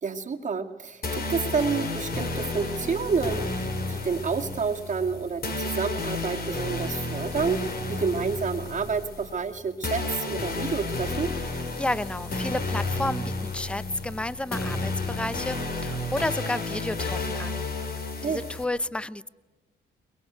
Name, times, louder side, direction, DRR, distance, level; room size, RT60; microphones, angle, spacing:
voice 1, 0.0-11.3 18.2-18.5, right 5 dB, 40° right, 3 dB, 2.3 m, -29 dB
sound 1, 1.0-18.6, left 2 dB, 50° left, 3.8 m, -32 dB
voice 2, 11.8-17.6 18.2-19.3, left 1 dB, 5° left, 17 dB, 0.7 m, -31 dB
23.5 x 22.0 x 8.1 m, 1.2 s
cardioid pair, 90°, 20 cm